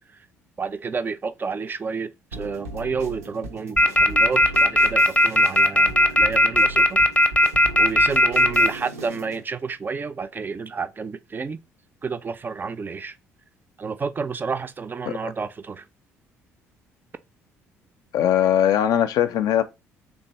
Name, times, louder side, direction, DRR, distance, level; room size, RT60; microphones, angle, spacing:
voice 1, 0.6-7.0 7.8-11.6 12.0-13.1 13.8-15.9, right 5 dB, 25° right, 0.4 m, -30 dB
sound 1, 2.3-9.4, right 3 dB, 80° right, 0.6 m, -38 dB
sound 2, 3.8-8.7, left 1 dB, 20° left, 0.7 m, -15 dB
voice 2, 18.1-19.6, left 10 dB, 55° left, 0.4 m, -20 dB
3.2 x 2.4 x 4.1 m
figure-of-eight pair, 50°, 7 cm